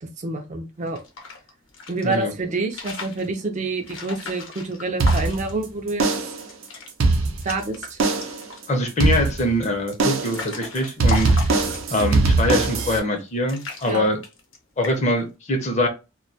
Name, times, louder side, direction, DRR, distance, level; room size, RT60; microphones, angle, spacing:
voice 1, 0.0-1.0 1.9-6.1 7.4-8.0 13.9-14.0, right 3 dB, 35° right, 0.4 m, -27 dB
sound 1, 0.8-2.2 2.6-3.3 3.8-5.7 6.0-6.1 6.4-6.9 7.2-7.9 8.2-8.7 9.4-12.1 12.8-13.2 13.5-14.6 14.8-15.2, left 4 dB, 75° left, 0.8 m, -36 dB
sound 2, 5.0-5.6 6.0-6.5 6.9-7.6 8.0-8.5 9.0-9.6 10.0-10.5 11.0-13.0, right 3 dB, 90° right, 0.5 m, -21 dB
voice 2, 8.7-11.4 11.9-14.2 14.8-15.9, left 1 dB, 35° left, 0.6 m, -23 dB
2.2 x 2.2 x 2.6 m
head